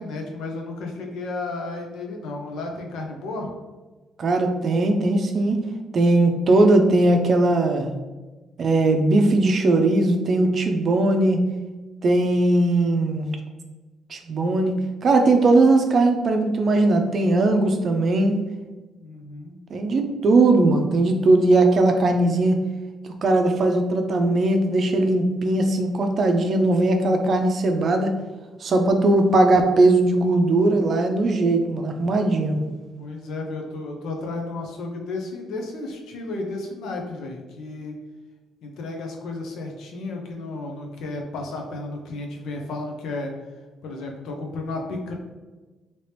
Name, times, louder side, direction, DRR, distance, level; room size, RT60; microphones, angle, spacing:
voice 1, 0.0-3.5 19.0-19.6 33.0-37.9 38.6-43.3 43.8-45.1, left 2 dB, 80° left, 2 dB, 0.6 m, -33 dB
voice 2, 4.2-5.6 5.9-7.9 8.6-11.4 12.0-13.3 14.1-18.4 19.7-22.6 23.2-28.1 28.6-32.6, right 2 dB, 50° right, 5 dB, 0.5 m, -19 dB
2.9 x 2.8 x 3.3 m, 1.2 s
cardioid pair, 90°, 0 cm